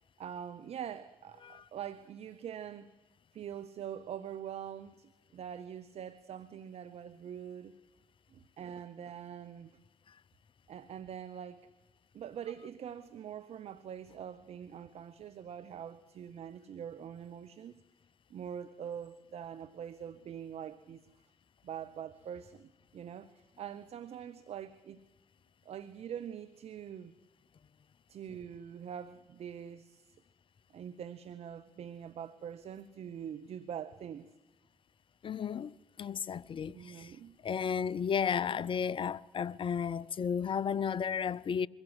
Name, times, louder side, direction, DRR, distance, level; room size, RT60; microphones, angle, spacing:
voice 1, 0.2-2.9 3.3-7.8 8.3-9.7 10.7-11.7 12.1-17.8 18.3-21.0 21.6-25.0 25.6-27.1 28.1-30.2 30.7-34.3 36.7-37.4, right 9 dB, 55° right, 0.8 m, -44 dB
voice 2, 35.2-37.1 37.4-41.7, left 7 dB, 45° left, 0.6 m, -33 dB
22.5 x 16.0 x 8.0 m
hypercardioid pair, 50°, 12 cm